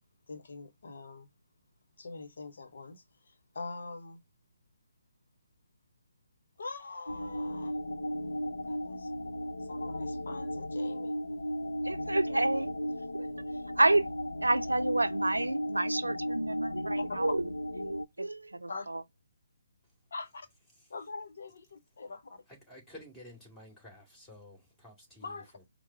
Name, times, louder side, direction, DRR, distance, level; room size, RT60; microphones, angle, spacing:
voice 1, 0.3-1.3 2.0-4.2 6.6-7.7 8.6-9.1 9.6-11.2 17.0-17.3 18.7-18.9 20.1-20.5 20.9-22.4 25.2-25.7, left 3 dB, 65° left, 0.8 m, -43 dB
sound 1, 7.1-18.1, equal, 85° left, 0.5 m, -35 dB
voice 2, 11.8-12.7 13.1-13.3 13.8-14.1 14.4-17.4 17.8-19.0, right 2 dB, 90° right, 0.5 m, -29 dB
voice 3, 22.5-25.7, left 1 dB, 5° left, 2.3 m, -52 dB
4.7 x 2.1 x 4.4 m
figure-of-eight pair, 145°, 0 cm